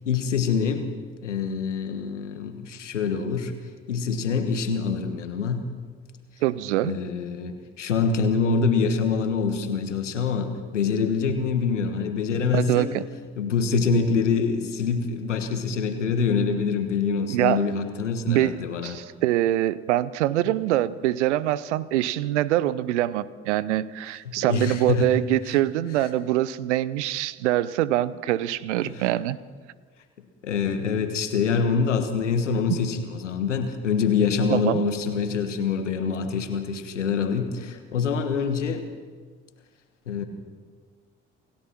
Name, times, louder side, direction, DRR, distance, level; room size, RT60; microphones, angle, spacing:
voice 1, 0.0-0.9 1.2-3.6 3.9-5.7 6.8-13.0 13.4-19.0 24.3-25.1 28.8-29.0 30.4-38.8 40.1-40.2, left 5 dB, 85° left, 8 dB, 1.5 m, -25 dB
voice 2, 6.4-6.9 12.5-13.0 17.3-17.6 18.3-29.4 32.7-32.8 34.5-34.8, right 14 dB, 75° right, 19 dB, 0.7 m, -24 dB
28.0 x 16.0 x 6.0 m, 1.5 s
figure-of-eight pair, 45°, 35 cm